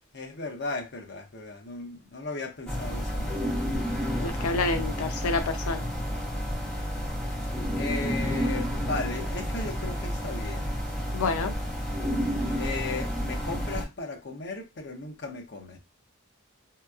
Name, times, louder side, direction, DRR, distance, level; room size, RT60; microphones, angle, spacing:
voice 1, 0.1-3.7 7.8-10.7 12.6-15.8, left 3 dB, 50° left, 0.7 m, -36 dB
sound 1, 2.7-13.8, equal, 5° left, 0.9 m, -30 dB
voice 2, 4.2-5.8 11.1-11.5, left 3 dB, 90° left, 0.5 m, -28 dB
3.3 x 2.8 x 2.3 m
head